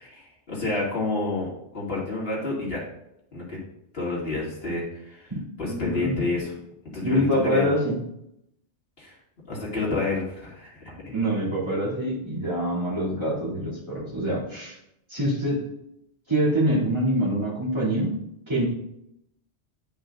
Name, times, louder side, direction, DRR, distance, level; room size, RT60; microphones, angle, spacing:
voice 1, 0.0-2.8 3.3-3.4 3.9-5.3 5.6-6.4 6.9-7.7 9.0-9.1 9.5-11.1, left 3 dB, 60° left, -5 dB, 2.5 m, -29 dB
voice 2, 5.7-6.1 7.0-8.0 11.1-14.8 15.1-15.7 16.3-18.7, equal, 25° right, -9 dB, 2.7 m, -25 dB
9.7 x 5.4 x 2.5 m, 0.80 s
omnidirectional pair, 1.2 m